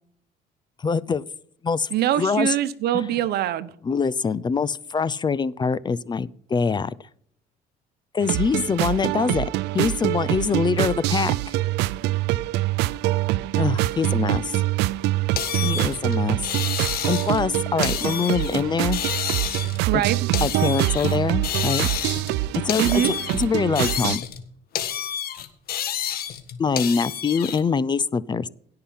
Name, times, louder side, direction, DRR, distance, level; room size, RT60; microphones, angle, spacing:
voice 1, 0.8-1.2 1.6-1.9 2.2-2.6 2.9-3.1 3.8-6.9 8.1-9.5 9.7-11.5 13.6-14.5 15.6-16.4 17.1-19.0 20.4-21.9 22.5-24.2 26.6-28.5, left 5 dB, 25° left, 19 dB, 0.5 m, -24 dB
voice 2, 1.9-3.7 19.9-20.3 22.8-23.1, right 12 dB, 70° right, 15 dB, 1.0 m, -23 dB
sound 1, 8.2-24.2, right 17 dB, 90° right, 0.5 m, -25 dB
sound 2, 15.4-17.4 17.8-18.6 18.9-21.2 21.4-22.4 22.7-24.4 24.7-27.6, left 10 dB, 65° left, 1.6 m, -29 dB
17.0 x 5.8 x 5.7 m, 0.65 s
cardioid pair, 110°, 17 cm